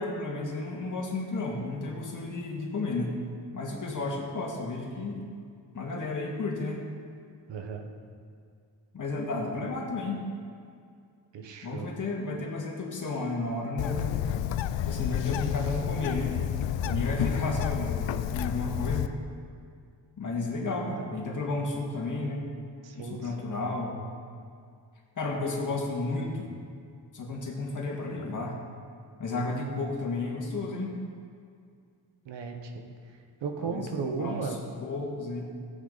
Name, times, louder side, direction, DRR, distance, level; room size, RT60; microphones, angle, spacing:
voice 1, 0.0-3.2 3.5-5.2 5.7-6.8 8.9-10.2 11.6-14.3 14.8-16.3 16.9-19.1 20.2-22.4 22.9-24.0 25.2-26.5 27.1-28.6 29.2-30.9 33.6-33.9 34.2-34.5 34.8-35.4, left 2 dB, 40° left, -1 dB, 2.2 m, -32 dB
voice 2, 7.5-7.9 11.3-11.9 16.8-17.2 22.8-23.5 32.2-32.9 33.4-34.6, right 5 dB, 70° right, 4 dB, 1.3 m, -35 dB
Bird, 13.8-19.1, left 10 dB, 75° left, 0.6 m, -30 dB
14.5 x 8.5 x 4.1 m, 2.2 s
cardioid pair, 100°, 44 cm